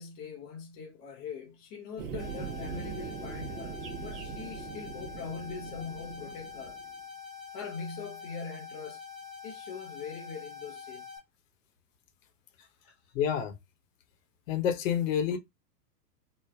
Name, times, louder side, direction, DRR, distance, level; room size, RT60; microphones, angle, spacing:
voice 1, 0.0-6.8 7.5-9.0 9.4-11.0 12.6-12.9, left 5 dB, 20° left, 0.4 m, -42 dB
sound 1, 2.0-6.9, right 7 dB, 55° right, 0.8 m, -41 dB
sound 2, 2.2-11.2, left 6 dB, ahead, 0.8 m, -45 dB
voice 2, 13.1-13.6 14.5-15.4, left 8 dB, 55° left, 0.8 m, -28 dB
3.3 x 2.1 x 2.2 m
hypercardioid pair, 105°, 48 cm